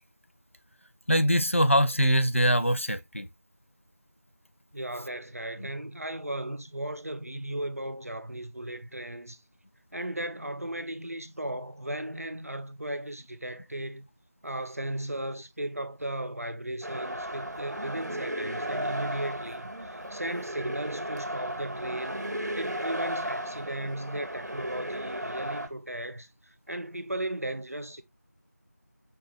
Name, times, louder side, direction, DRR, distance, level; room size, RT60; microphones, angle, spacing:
voice 1, 1.1-3.3 5.6-5.7, equal, 50° left, 0.4 m, -23 dB
voice 2, 4.7-9.4 9.9-14.1 14.4-22.2 22.5-28.0, right 1 dB, 55° right, 0.5 m, -36 dB
sound 1, 16.8-25.7, right 1 dB, 80° right, 1.1 m, -35 dB
5.2 x 2.2 x 3.1 m
figure-of-eight pair, 180°, 9 cm